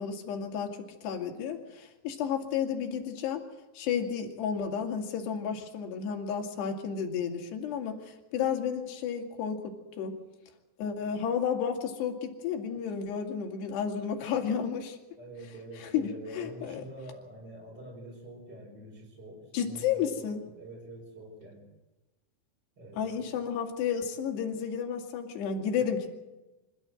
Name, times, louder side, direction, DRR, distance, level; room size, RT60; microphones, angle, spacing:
voice 1, 0.0-3.4 3.7-10.2 10.8-15.0 15.8-16.8 19.5-20.4 23.0-26.1, left 7 dB, 65° left, 3 dB, 4.4 m, -32 dB
voice 2, 15.2-21.7 22.8-23.3 25.8-25.9, right 1 dB, 20° right, -4 dB, 5.5 m, -46 dB
25.5 x 14.0 x 7.8 m, 1.1 s
omnidirectional pair, 5.2 m